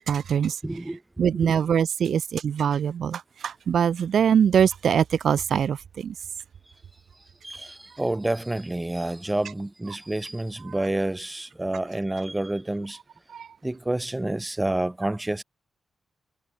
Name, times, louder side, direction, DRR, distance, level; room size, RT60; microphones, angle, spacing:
voice 1, 0.0-0.6 1.2-6.1 13.3-13.5, right 8 dB, 65° right, 1.0 m, -23 dB
voice 2, 0.6-1.5 7.4-13.0 13.6-15.4, right 1 dB, 10° right, 1.0 m, -29 dB
wide cardioid pair, 145°, 0 cm